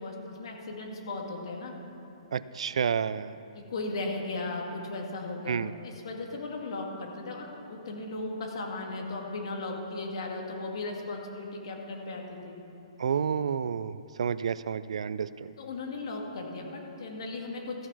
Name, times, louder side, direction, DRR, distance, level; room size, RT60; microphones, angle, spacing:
voice 1, 0.0-1.7 3.5-5.6 5.8-12.6 15.6-17.9, left 2 dB, 55° left, 1 dB, 1.9 m, -36 dB
voice 2, 2.3-3.4 5.5-5.7 13.0-15.3, right 7 dB, 75° right, 16 dB, 0.3 m, -30 dB
14.0 x 6.1 x 6.1 m, 2.8 s
hypercardioid pair, 170°, 3 cm